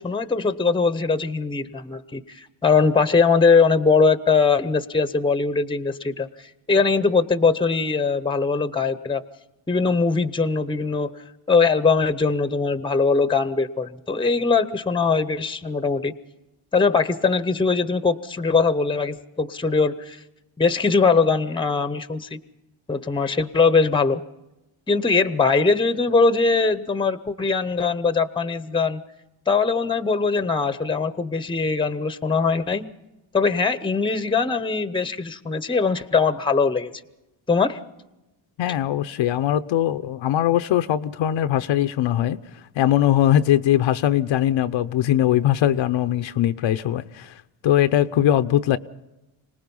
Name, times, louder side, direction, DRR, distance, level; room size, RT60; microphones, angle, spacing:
voice 1, 0.0-9.2 9.7-11.2 11.5-16.1 16.7-20.2 20.6-22.4 22.9-24.2 24.9-29.0 29.5-32.9 33.3-36.9 37.5-37.8, left 4 dB, 10° left, 0.9 m, -21 dB
voice 2, 38.6-42.4 42.8-48.8, left 12 dB, 65° left, 0.8 m, -21 dB
26.0 x 19.0 x 5.5 m
cardioid pair, 80°, 49 cm